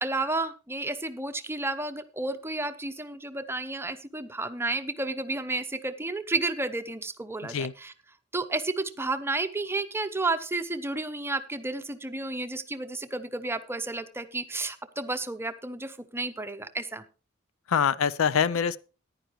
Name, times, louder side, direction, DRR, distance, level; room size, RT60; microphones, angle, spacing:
voice 1, 0.0-7.9 8.3-17.0, right 2 dB, 10° right, 0.7 m, -32 dB
voice 2, 7.4-7.7 17.7-18.8, left 7 dB, 80° left, 0.4 m, -24 dB
15.0 x 10.5 x 3.0 m
head